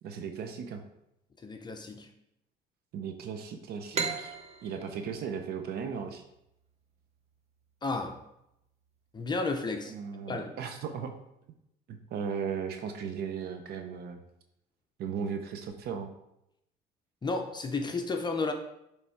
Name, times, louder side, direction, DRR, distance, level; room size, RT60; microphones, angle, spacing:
voice 1, 0.0-0.8 2.9-4.4 4.6-6.2 9.8-11.1 11.9-14.2 15.0-16.1, right 6 dB, 70° right, 6 dB, 0.7 m, -36 dB
voice 2, 1.4-2.1 7.8-8.2 9.1-9.9 10.3-10.6 17.2-18.5, left 3 dB, 25° left, 4 dB, 0.6 m, -32 dB
sound 1, 3.9-7.3, right 5 dB, 40° right, 0.8 m, -37 dB
6.9 x 3.3 x 4.7 m, 0.82 s
cardioid pair, 110°, 17 cm